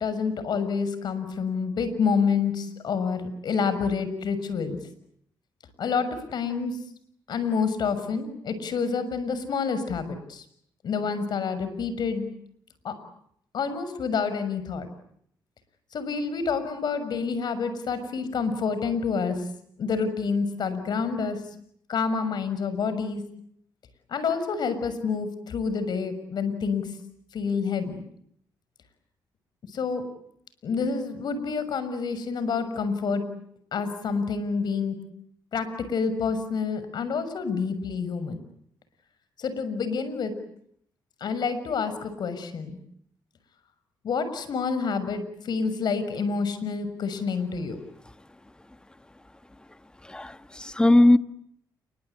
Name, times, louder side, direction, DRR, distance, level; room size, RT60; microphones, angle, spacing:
voice 1, 0.0-4.8 5.8-6.8 7.3-10.4 10.8-12.2 12.8-12.9 13.5-14.9 15.9-19.4 19.8-21.4 21.9-23.2 24.1-26.9 27.3-28.0 29.7-30.0 30.6-33.2 33.7-35.0 35.5-38.4 39.4-40.3 41.2-42.8 44.0-47.8, left 5 dB, 65° left, 12 dB, 6.4 m, -28 dB
voice 2, 50.1-51.2, left 1 dB, 10° left, 11 dB, 1.5 m, -19 dB
29.5 x 24.0 x 8.4 m, 0.70 s
cardioid pair, 85°, 8 cm